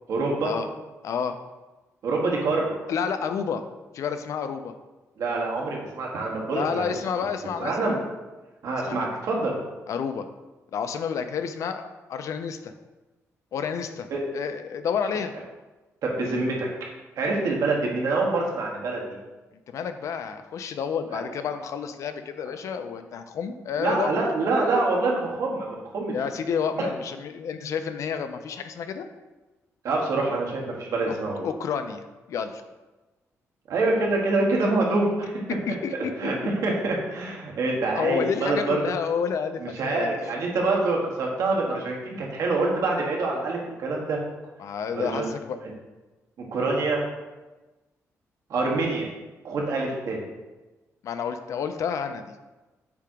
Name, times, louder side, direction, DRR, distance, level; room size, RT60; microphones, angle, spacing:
voice 1, 0.1-0.5 2.0-2.7 5.2-6.8 7.6-8.0 8.6-9.5 14.1-14.2 16.0-16.7 17.2-19.0 21.1-21.2 23.8-26.1 29.8-31.4 33.7-35.4 36.2-36.3 36.6-38.8 39.6-44.2 44.9-45.3 46.4-47.0 48.5-49.1 49.4-50.2, right 3 dB, 75° right, -2 dB, 1.4 m, -26 dB
voice 2, 1.0-1.4 2.9-3.6 3.9-4.7 6.5-7.9 8.7-9.2 9.9-10.3 10.7-12.7 13.5-15.3 19.7-24.2 26.1-29.1 31.1-31.2 31.4-32.6 35.7-36.5 38.0-40.1 44.6-45.6 51.0-52.3, left 6 dB, 70° left, 9 dB, 0.4 m, -30 dB
6.9 x 2.9 x 4.9 m, 1.2 s
wide cardioid pair, 145°, 6 cm